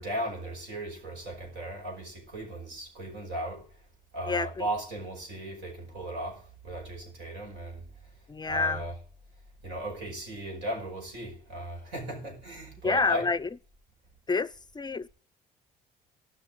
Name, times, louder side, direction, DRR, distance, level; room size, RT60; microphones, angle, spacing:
voice 1, 0.0-3.7 4.1-7.8 8.5-9.0 9.6-13.3, right 1 dB, 80° right, 5.1 m, -36 dB
voice 2, 8.3-8.8 12.8-13.5 14.3-15.1, left 4 dB, 25° left, 0.5 m, -28 dB
13.0 x 5.9 x 9.1 m
supercardioid pair, 65°, 19 cm